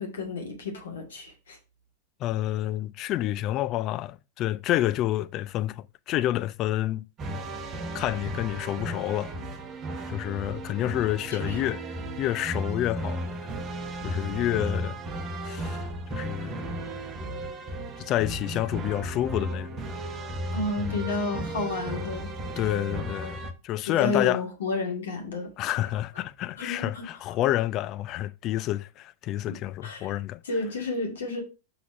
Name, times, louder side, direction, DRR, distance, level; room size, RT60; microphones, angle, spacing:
voice 1, 0.0-1.6 10.8-10.9 11.3-11.6 20.5-22.3 23.9-25.5 25.8-25.9 26.6-27.0 29.8-30.1 30.4-31.4, left 3 dB, 65° left, 2.2 m, -31 dB
voice 2, 2.2-7.1 7.9-9.3 10.1-11.8 12.2-13.5 14.0-15.0 15.4-16.7 18.0-19.8 20.8-21.4 22.6-24.4 25.6-30.4, left 14 dB, 35° left, 0.4 m, -29 dB
sound 1, 7.2-23.5, right 1 dB, 30° right, 1.0 m, -35 dB
6.0 x 4.1 x 5.5 m
figure-of-eight pair, 90°, 0 cm